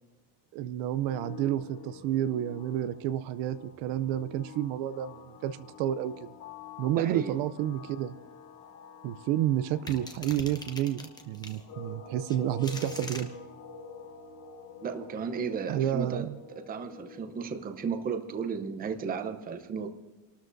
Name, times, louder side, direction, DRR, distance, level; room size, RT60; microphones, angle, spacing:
voice 1, 0.5-6.3 6.8-8.1 9.0-13.3 15.7-16.4, right 11 dB, 70° right, 0.6 m, -30 dB
sound 1, 1.0-18.6, left 5 dB, 60° left, 3.3 m, -48 dB
voice 2, 6.9-7.4 14.8-19.9, right 6 dB, 20° right, 0.7 m, -34 dB
sound 2, 9.9-11.6 12.3-13.3, left 2 dB, 10° left, 0.8 m, -42 dB
29.0 x 13.0 x 2.6 m
cardioid pair, 175°, 44 cm